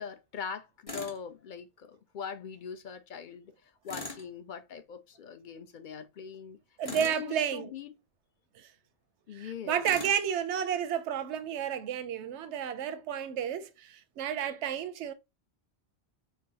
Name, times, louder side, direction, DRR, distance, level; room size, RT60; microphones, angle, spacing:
voice 1, 0.0-6.6 6.9-7.9 9.3-9.8, left 6 dB, 55° left, 0.6 m, -42 dB
Tools, 0.9-1.2 3.9-4.3 6.8-7.3 9.8-10.2, left 2 dB, 35° left, 1.0 m, -40 dB
voice 2, 6.8-7.7 8.6-8.7 9.3-15.1, right 9 dB, 90° right, 0.9 m, -31 dB
5.4 x 2.1 x 2.7 m
omnidirectional pair, 1.1 m